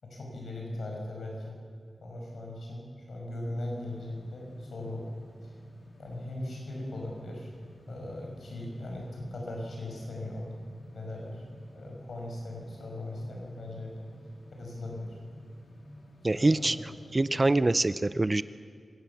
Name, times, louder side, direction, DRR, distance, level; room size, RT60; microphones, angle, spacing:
voice 1, 0.0-1.6 2.0-5.0 5.4-5.5 6.0-7.5 7.9-10.5 10.9-11.4 11.7-13.9 14.6-15.2 16.3-16.8, left 1 dB, 85° left, -1 dB, 5.9 m, -39 dB
sound 1, 3.5-17.4, left 1 dB, 60° left, 2.8 m, -53 dB
voice 2, 16.2-18.4, right 2 dB, 25° right, 15 dB, 0.5 m, -25 dB
25.0 x 17.0 x 7.2 m, 2.1 s
wide cardioid pair, 130°, 0 cm